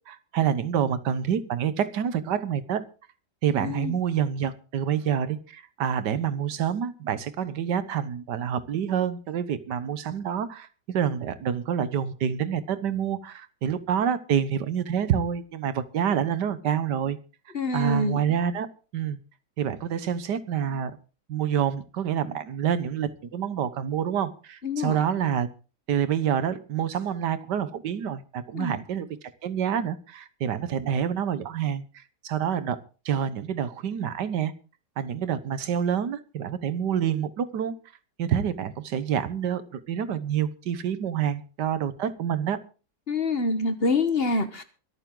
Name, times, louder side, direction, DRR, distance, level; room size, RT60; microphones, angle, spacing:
voice 1, 0.1-2.8 3.4-17.2 17.7-18.7 18.9-19.2 19.6-21.0 21.3-25.5 25.9-29.1 29.4-32.8 33.0-34.5 35.0-37.7 38.2-42.6, right 8 dB, 85° right, 14 dB, 1.6 m, -27 dB
voice 2, 3.5-3.9 17.5-18.2 24.6-25.0 28.5-28.8 43.1-44.6, left 2 dB, 40° left, 10 dB, 1.3 m, -26 dB
23.5 x 9.3 x 3.8 m, 0.36 s
omnidirectional pair, 1.8 m